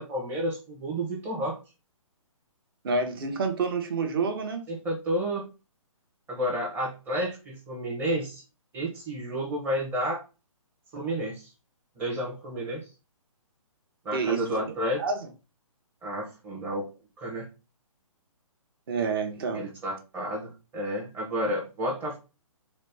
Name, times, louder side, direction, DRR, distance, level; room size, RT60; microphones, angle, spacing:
voice 1, 0.0-1.6 4.7-5.4 6.3-8.4 8.7-10.2 10.9-11.5 12.0-12.9 14.0-15.0 16.0-16.9 17.2-17.5 19.5-22.2, equal, 10° right, 0.7 m, -31 dB
voice 2, 2.8-4.6 14.1-14.4 15.0-15.2 18.9-19.7, right 4 dB, 40° right, 0.8 m, -28 dB
4.1 x 2.1 x 3.3 m
hypercardioid pair, 155°, 18 cm